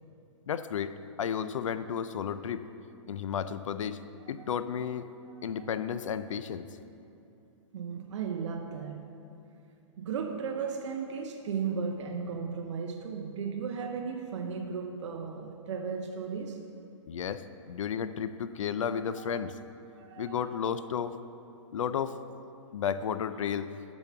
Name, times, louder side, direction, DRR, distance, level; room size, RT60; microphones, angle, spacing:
voice 1, 0.5-2.6 3.1-4.0 4.3-5.1 5.4-6.7 17.1-19.6 20.2-21.2 21.7-22.1 22.7-23.7, left 8 dB, 80° left, 0.4 m, -33 dB
voice 2, 4.2-4.6 5.6-5.7 7.7-9.1 10.0-16.7 18.9-19.6 19.9-20.7, right 6 dB, 65° right, 0.6 m, -36 dB
6.9 x 6.2 x 5.6 m
hypercardioid pair, 135°, 16 cm